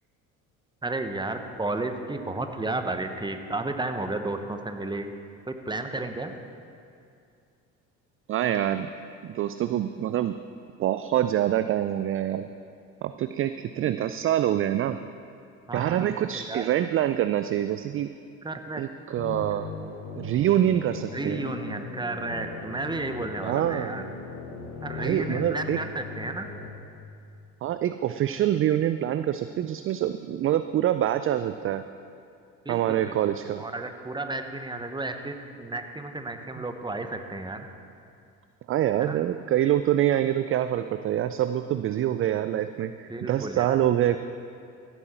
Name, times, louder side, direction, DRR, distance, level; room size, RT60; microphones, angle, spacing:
voice 1, 0.8-5.1 5.5-6.3 15.7-16.7 18.4-18.8 21.1-24.0 24.8-26.5 32.6-33.3 33.6-37.7 39.0-39.2 43.1-43.8, right 2 dB, 10° right, 7 dB, 1.1 m, -33 dB
voice 2, 8.3-8.9 9.2-10.4 10.8-12.5 13.0-15.0 15.7-18.1 18.8-19.7 20.2-21.4 23.4-24.1 25.0-25.8 27.6-31.8 32.7-33.6 38.7-44.2, right 11 dB, 35° right, 11 dB, 0.4 m, -25 dB
sound 1, 19.2-26.7, left 4 dB, 40° left, 2.0 m, -38 dB
15.5 x 9.0 x 4.4 m, 2.5 s
hypercardioid pair, 60°, 42 cm